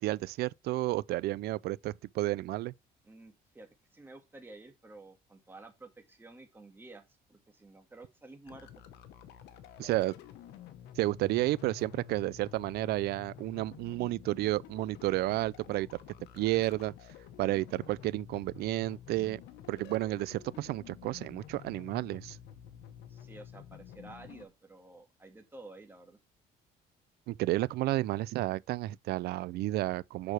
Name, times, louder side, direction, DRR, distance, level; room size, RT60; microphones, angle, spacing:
voice 1, 0.0-2.7 9.8-10.1 11.0-15.9 16.3-16.9 17.4-19.4 19.7-22.4 27.3-30.3, right 17 dB, 70° right, 0.4 m, -31 dB
voice 2, 3.0-8.7 23.1-26.2, right 2 dB, 15° right, 1.7 m, -52 dB
sound 1, 8.5-24.5, left 10 dB, 85° left, 1.1 m, -50 dB
6.7 x 6.2 x 3.3 m
cardioid pair, 110°, 17 cm